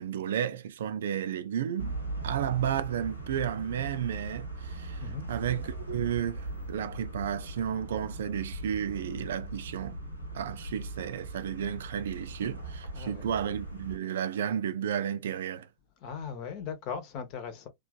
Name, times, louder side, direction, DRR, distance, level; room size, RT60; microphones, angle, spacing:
voice 1, 0.0-2.0 2.2-10.0 10.3-15.7, right 9 dB, 60° right, 0.4 m, -32 dB
sound 1, 1.8-14.0, right 2 dB, 90° right, 1.0 m, -39 dB
voice 2, 12.9-13.3 16.0-17.7, left 6 dB, 40° left, 1.0 m, -38 dB
3.1 x 2.5 x 2.3 m
figure-of-eight pair, 90°, 0 cm